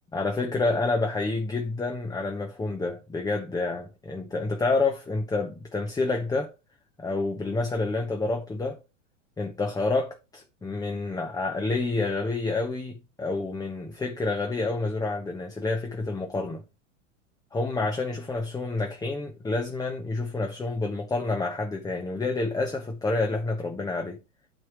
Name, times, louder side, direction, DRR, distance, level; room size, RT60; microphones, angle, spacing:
voice 1, 0.1-6.5 7.0-8.8 9.4-16.6 17.5-24.2, left 3 dB, 10° left, 1.2 m, -28 dB
9.0 x 4.8 x 4.8 m
figure-of-eight pair, 90°, 38 cm